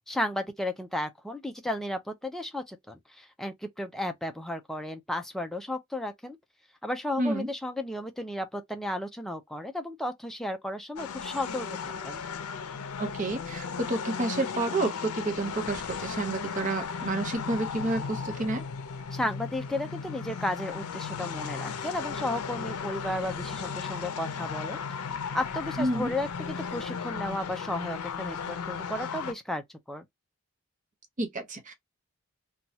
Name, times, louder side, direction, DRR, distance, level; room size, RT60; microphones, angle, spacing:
voice 1, 0.1-6.4 6.8-12.2 19.1-24.8 25.3-30.0, left 1 dB, ahead, 0.4 m, -34 dB
voice 2, 7.2-7.5 13.0-18.6 25.8-26.1 31.2-31.7, right 2 dB, 35° right, 0.7 m, -30 dB
sound 1, 11.0-29.3, left 6 dB, 85° left, 0.5 m, -36 dB
2.9 x 2.3 x 2.7 m
head